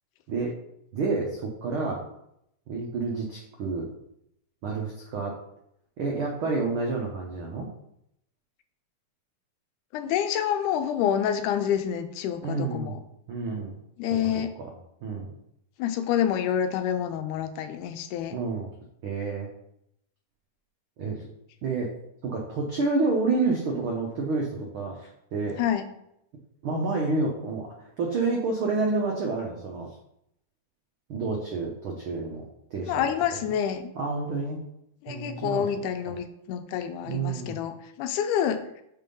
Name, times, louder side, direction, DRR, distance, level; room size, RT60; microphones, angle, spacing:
voice 1, 0.9-2.0 2.7-3.9 4.6-5.4 6.0-7.7 12.4-13.0 13.3-13.8 14.2-14.3 14.6-14.7 15.0-15.3 18.3-18.7 19.0-19.5 21.0-21.2 21.6-21.9 22.2-25.6 26.6-29.9 31.1-32.4 32.7-33.1 34.0-34.6 35.1-35.7 37.0-37.6, right 3 dB, 85° right, -1 dB, 1.1 m, -29 dB
voice 2, 9.9-13.0 14.0-14.5 15.8-18.4 25.6-25.8 32.9-33.9 35.0-38.6, left 9 dB, 80° left, 8 dB, 2.1 m, -27 dB
5.6 x 4.6 x 5.3 m, 0.77 s
omnidirectional pair, 3.6 m